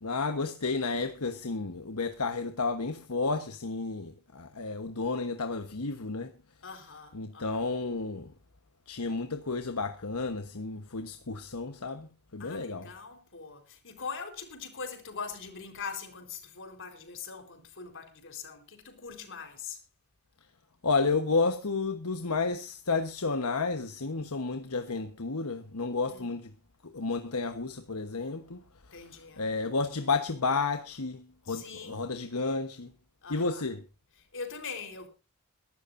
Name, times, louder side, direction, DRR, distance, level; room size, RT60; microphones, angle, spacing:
voice 1, 0.0-6.3 7.1-8.3 8.9-12.9 20.8-26.5 26.9-28.6 28.9-32.9 33.3-33.8, left 4 dB, 80° left, 1.2 m, -31 dB
voice 2, 6.6-7.7 12.4-19.8 26.0-26.3 28.9-29.5 31.5-32.0 33.2-33.6 34.3-35.1, left 5 dB, 60° left, 4.1 m, -42 dB
23.0 x 12.5 x 2.7 m
head